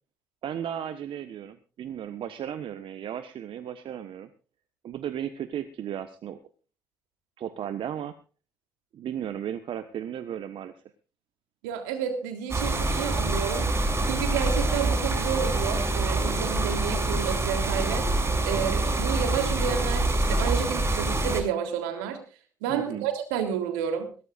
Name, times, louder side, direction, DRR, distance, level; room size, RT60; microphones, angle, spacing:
voice 1, 0.4-4.3 4.8-6.4 7.4-8.1 8.9-10.7 22.7-23.1, right 9 dB, 60° right, 10 dB, 1.3 m, -35 dB
voice 2, 11.6-13.7 14.0-18.1 18.4-22.2 22.6-24.1, right 8 dB, 80° right, 6 dB, 3.4 m, -30 dB
sound 1, 12.5-21.4, right 2 dB, 25° right, 6.2 m, -26 dB
21.5 x 17.5 x 2.6 m, 0.35 s
hypercardioid pair, 50°, 10 cm